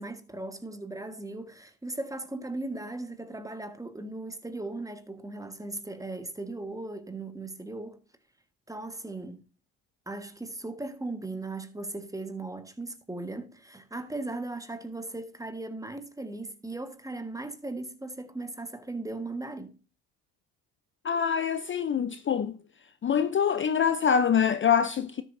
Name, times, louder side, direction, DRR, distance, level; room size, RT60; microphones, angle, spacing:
voice 1, 0.0-8.0 8.7-9.4 10.1-19.8, right 2 dB, 10° right, 1.4 m, -38 dB
voice 2, 21.0-22.6 23.0-25.2, left 7 dB, 35° left, 0.6 m, -25 dB
12.5 x 7.2 x 2.6 m
supercardioid pair, 75°, 37 cm